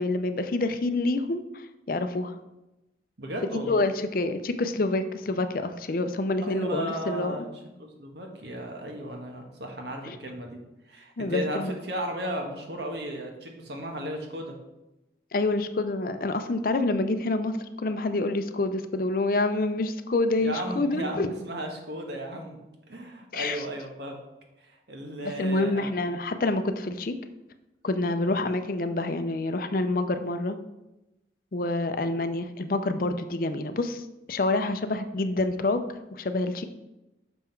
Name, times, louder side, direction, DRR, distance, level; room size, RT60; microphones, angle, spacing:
voice 1, 0.0-2.3 3.5-7.4 10.0-10.2 11.2-11.7 15.3-21.3 23.3-23.6 25.2-27.2 27.8-30.6 31.5-34.0 34.3-35.8 36.1-36.6, left 2 dB, 50° left, 9 dB, 0.5 m, -27 dB
voice 2, 3.2-3.8 6.4-7.5 7.8-10.6 10.8-14.5 20.4-22.6 22.9-24.2 24.6-25.9 28.2-28.5, right 1 dB, 70° right, 2 dB, 1.3 m, -35 dB
6.1 x 5.7 x 4.5 m, 0.96 s
head